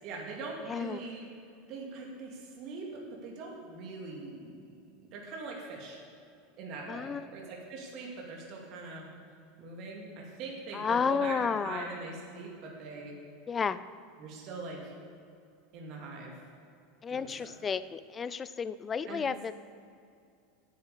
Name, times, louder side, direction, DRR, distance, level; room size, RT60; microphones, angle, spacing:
voice 1, 0.0-1.3 1.7-4.5 5.1-6.0 6.6-9.0 9.6-13.2 14.2-14.9 15.7-16.3 17.1-17.5 19.1-19.2, right 3 dB, 50° right, -1 dB, 2.4 m, -42 dB
voice 2, 0.7-1.0 6.9-7.3 10.7-11.9 13.5-13.8 17.0-19.5, left 6 dB, 25° left, 15 dB, 0.5 m, -32 dB
10.5 x 8.8 x 6.9 m, 2.5 s
hypercardioid pair, 85°, 0 cm